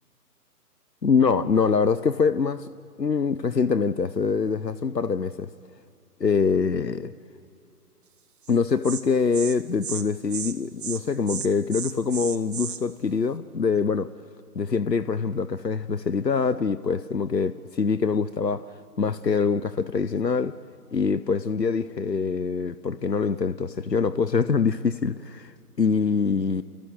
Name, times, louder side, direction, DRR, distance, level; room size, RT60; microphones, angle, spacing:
voice 1, 1.0-2.7 3.0-5.5 6.2-7.1 8.5-14.1 14.6-20.6 20.9-26.6, left 5 dB, 90° left, 0.9 m, -24 dB
Insect, 8.5-8.6 8.8-9.0 9.3-9.5 9.8-10.0 10.3-10.5 10.8-11.0 11.3-12.8, right 8 dB, 30° right, 1.2 m, -33 dB
30.0 x 14.0 x 9.3 m
figure-of-eight pair, 135°, 48 cm